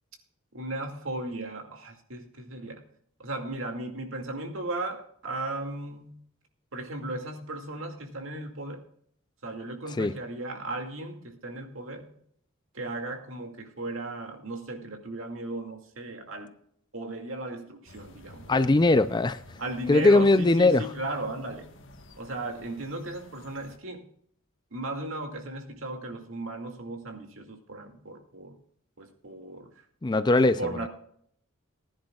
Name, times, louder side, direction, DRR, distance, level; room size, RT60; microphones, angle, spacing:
voice 1, 0.5-2.8 3.2-6.2 6.7-8.8 9.4-12.1 12.7-16.5 16.9-18.7 19.6-21.7 22.2-24.1 24.7-28.6 29.0-29.9 30.6-30.9, right 2 dB, 70° right, 2.3 m, -36 dB
sound 1, 17.9-23.8, left 1 dB, 65° left, 1.5 m, -51 dB
voice 2, 18.5-19.4 19.9-20.8 30.0-30.6, left 2 dB, 20° left, 0.4 m, -20 dB
20.0 x 10.5 x 2.4 m
head